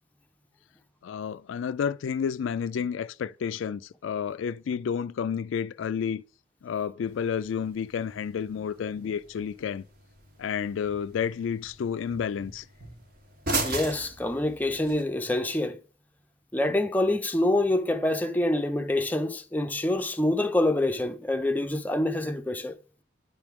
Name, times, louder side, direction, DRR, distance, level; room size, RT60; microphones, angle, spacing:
voice 1, 1.0-6.2 6.6-9.8 10.4-12.7, left 7 dB, 80° left, 0.3 m, -30 dB
sound 1, 7.0-15.0, right 2 dB, 50° right, 1.1 m, -38 dB
voice 2, 13.6-15.8 16.5-22.7, left 1 dB, 10° left, 0.5 m, -26 dB
9.6 x 3.5 x 5.9 m
head